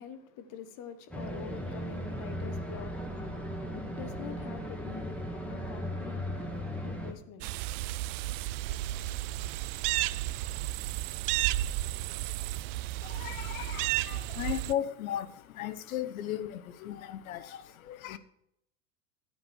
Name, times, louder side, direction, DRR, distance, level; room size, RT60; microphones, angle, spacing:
voice 1, 0.0-7.9, left 8 dB, 50° left, 1.3 m, -46 dB
sound 1, 1.1-7.1, equal, 5° left, 2.0 m, -37 dB
sound 2, 7.4-14.7, right 16 dB, 60° right, 0.6 m, -33 dB
voice 2, 13.0-18.2, left 11 dB, 80° left, 1.1 m, -36 dB
11.5 x 8.9 x 4.7 m
hypercardioid pair, 95°, 42 cm